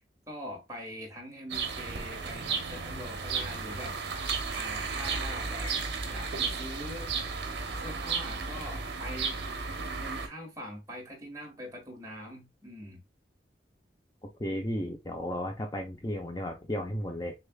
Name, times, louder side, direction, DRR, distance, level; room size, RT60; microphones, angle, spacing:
voice 1, 0.3-3.9 4.5-7.1 7.8-9.4 10.0-13.0, equal, 20° right, 1.5 m, -43 dB
sound 1, 1.5-10.3, right 4 dB, 75° right, 0.9 m, -34 dB
voice 2, 14.4-17.3, equal, 20° left, 0.6 m, -34 dB
6.4 x 2.5 x 2.3 m
head